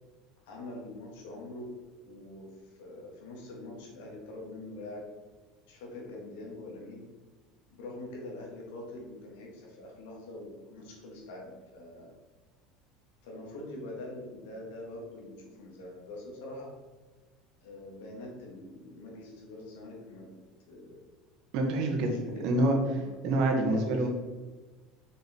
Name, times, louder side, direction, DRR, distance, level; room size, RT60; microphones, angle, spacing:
voice 1, 0.4-5.1 5.7-7.0 7.7-12.1 13.2-16.7 17.6-20.3 20.7-21.0 21.7-23.2 23.7-24.1, left 2 dB, 85° left, -1 dB, 2.6 m, -44 dB
voice 2, 21.5-22.1 22.4-22.8 23.2-24.1, right 2 dB, 60° right, 1 dB, 1.6 m, -26 dB
6.4 x 5.7 x 4.7 m, 1.3 s
supercardioid pair, 135°, 0 cm